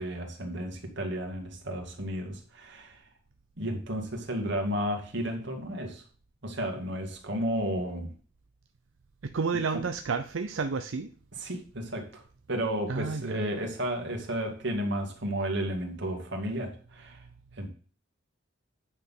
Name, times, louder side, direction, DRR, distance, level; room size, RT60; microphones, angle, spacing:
voice 1, 0.0-3.0 3.6-6.0 6.4-8.1 9.7-9.8 11.4-12.2 12.5-17.2 17.6-17.7, equal, 65° right, 3 dB, 2.3 m, -33 dB
voice 2, 9.2-11.1 12.9-13.4, right 4 dB, 85° right, 9 dB, 0.6 m, -31 dB
9.6 x 4.3 x 7.3 m, 0.41 s
head